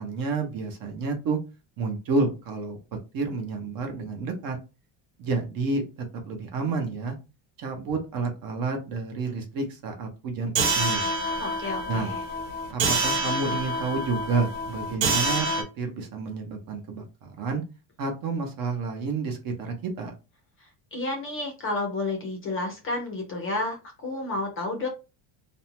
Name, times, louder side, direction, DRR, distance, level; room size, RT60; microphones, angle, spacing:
voice 1, 0.0-1.4 1.8-2.8 3.1-4.6 5.2-7.2 7.6-11.1 11.9-12.1 12.7-15.5 15.8-17.6 18.0-20.1, right 4 dB, 45° right, 4 dB, 0.7 m, -30 dB
sound 1, 10.6-15.6, right 2 dB, 70° right, 1.0 m, -27 dB
voice 2, 11.4-12.2 20.6-24.9, left 2 dB, 30° left, 2 dB, 0.5 m, -31 dB
2.5 x 2.1 x 2.9 m, 0.29 s
cardioid pair, 175°, 48 cm